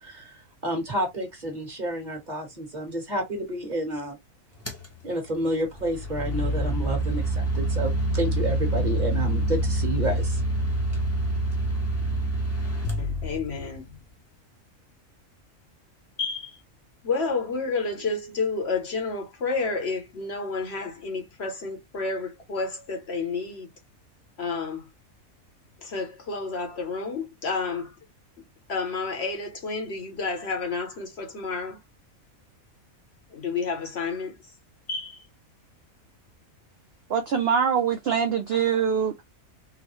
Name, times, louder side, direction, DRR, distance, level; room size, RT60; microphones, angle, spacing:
voice 1, 0.0-4.1 5.0-10.4, right 1 dB, 35° right, 1.3 m, -30 dB
sound 1, 4.7-4.9 5.8-13.8, right 1 dB, 20° left, 0.4 m, -26 dB
voice 2, 13.0-13.9 16.2-16.6 17.0-23.7 24.4-24.9 25.8-27.9 28.7-31.8 33.3-34.4 34.9-35.3, left 4 dB, 55° left, 1.0 m, -30 dB
voice 3, 37.1-39.2, right 7 dB, 65° right, 0.6 m, -24 dB
3.9 x 2.0 x 3.0 m
omnidirectional pair, 1.5 m